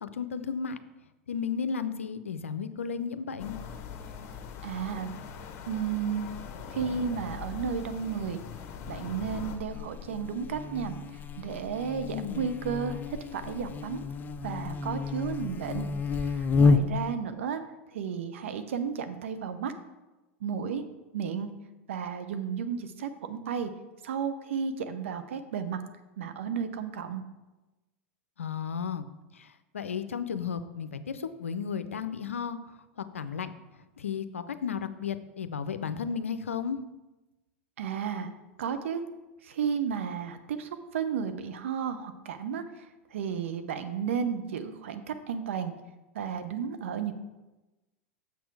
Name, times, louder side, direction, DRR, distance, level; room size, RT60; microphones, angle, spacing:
voice 1, 0.0-0.8 1.3-3.6 12.1-12.5 28.4-29.1 29.7-32.6 33.0-33.5 34.0-36.8, left 6 dB, 85° left, 11 dB, 0.5 m, -33 dB
sound 1, 3.4-9.6, left 7 dB, 45° left, 1.0 m, -41 dB
voice 2, 4.6-5.1 5.7-6.3 6.7-8.4 8.9-10.9 11.4-14.0 14.4-15.9 16.2-17.6 17.9-19.7 20.4-20.8 21.1-21.5 21.9-23.7 24.0-25.8 26.2-27.2 37.8-38.3 38.6-39.0 39.4-42.6 43.1-45.7 46.1-47.1, right 7 dB, 70° right, 9 dB, 0.7 m, -33 dB
Buzz, 9.3-17.1, left 4 dB, 25° left, 0.5 m, -30 dB
7.0 x 6.1 x 4.7 m, 1.1 s
hypercardioid pair, 90°, 7 cm